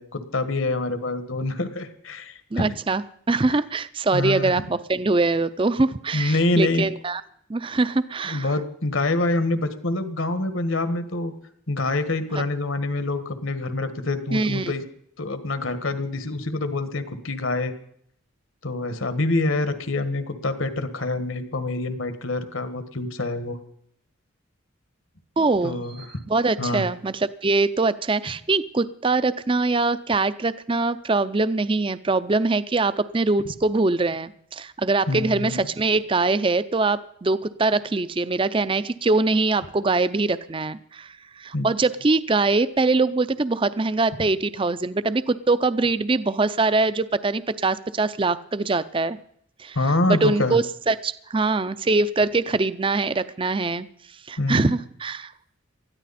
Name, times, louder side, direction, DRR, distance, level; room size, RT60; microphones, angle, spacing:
voice 1, 0.0-2.7 4.1-4.6 6.1-6.9 8.2-11.3 11.7-14.8 15.2-17.7 18.6-23.6 25.6-26.1 26.6-26.9 35.1-35.7 41.5-41.7 49.8-50.6 54.4-54.8, left 2 dB, 75° left, 10 dB, 1.6 m, -26 dB
voice 2, 2.5-7.2 7.5-8.5 14.3-14.7 25.4-49.2 49.6-49.8 50.1-53.9 54.3-55.3, right 3 dB, 25° right, 15 dB, 0.5 m, -23 dB
20.0 x 13.5 x 4.2 m, 0.70 s
head